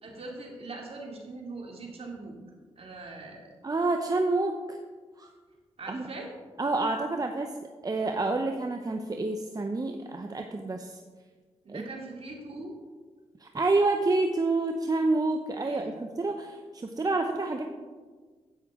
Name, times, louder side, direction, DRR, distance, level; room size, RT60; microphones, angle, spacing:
voice 1, 0.0-2.4 2.8-3.5 5.8-6.3 11.6-12.8 15.6-15.9, right 3 dB, 55° right, 0 dB, 2.4 m, -41 dB
voice 2, 3.6-4.8 5.2-5.3 5.9-6.0 6.6-7.5 7.8-11.0 11.7-11.8 13.4-17.6, right 2 dB, 30° right, 4 dB, 0.7 m, -28 dB
11.0 x 8.2 x 3.6 m, 1.4 s
cardioid pair, 55°, 12 cm